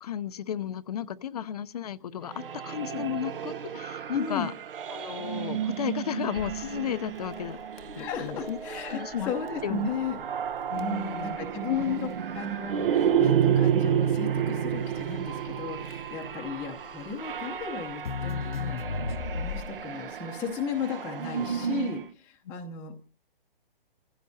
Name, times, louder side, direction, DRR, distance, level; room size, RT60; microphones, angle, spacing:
voice 1, 0.0-4.5 4.9-7.6 8.0-8.6 8.9-9.3 9.6-9.9 10.7-11.4, left 9 dB, 40° left, 0.7 m, -33 dB
sound 1, 2.3-22.1, right 8 dB, 65° right, 1.2 m, -31 dB
voice 2, 4.1-4.5 7.9-10.2 10.8-18.8 19.3-22.9, left 5 dB, 5° left, 0.9 m, -35 dB
Crackle, 6.4-19.9, left 5 dB, 80° left, 1.2 m, -38 dB
29.5 x 15.5 x 2.8 m
hypercardioid pair, 165°, 29 cm